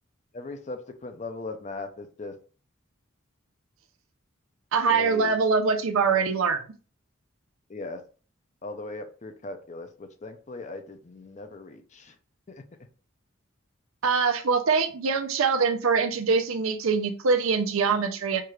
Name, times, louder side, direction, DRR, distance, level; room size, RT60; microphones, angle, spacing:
voice 1, 0.3-2.3 4.9-5.4 7.7-8.0 8.6-12.2 12.5-12.6, left 2 dB, 35° left, 7 dB, 0.5 m, -38 dB
voice 2, 4.7-6.6 14.0-18.4, right 5 dB, 80° right, 7 dB, 0.6 m, -23 dB
4.6 x 2.4 x 3.0 m, 0.38 s
head